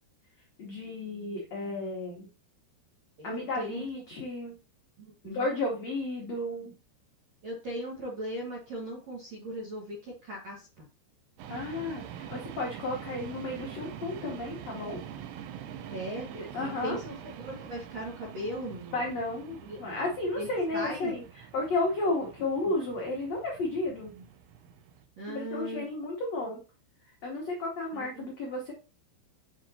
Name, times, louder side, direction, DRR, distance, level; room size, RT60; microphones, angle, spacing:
voice 1, 0.6-2.3 3.2-4.5 5.2-6.7 11.5-15.0 16.3-17.0 18.9-24.1 25.3-26.6 27.0-28.7, left 2 dB, 80° left, -1 dB, 1.5 m, -33 dB
voice 2, 3.2-3.8 5.0-5.5 7.4-10.7 15.6-16.3 16.6-17.1 17.4-19.1 19.6-19.8 20.4-21.1 24.2-24.3 25.2-25.9 27.9-28.3, right 1 dB, 60° right, -3 dB, 1.8 m, -38 dB
sound 1, 11.4-25.1, right 9 dB, 80° right, 2.6 m, -45 dB
7.2 x 4.8 x 2.8 m, 0.33 s
omnidirectional pair, 5.1 m